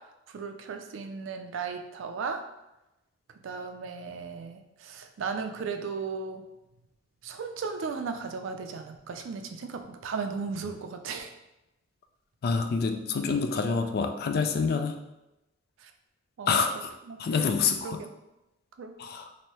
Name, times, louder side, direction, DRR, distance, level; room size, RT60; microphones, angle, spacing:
voice 1, 0.3-2.4 3.4-6.4 7.2-11.3 15.8-15.9 16.4-16.5 17.1-17.4 17.8-18.1 18.8-18.9, right 5 dB, 75° right, 6 dB, 0.4 m, -36 dB
voice 2, 12.4-15.0 16.5-16.9 17.2-18.0 19.0-19.3, left 5 dB, 50° left, 6 dB, 0.3 m, -27 dB
2.9 x 2.6 x 3.1 m, 0.94 s
head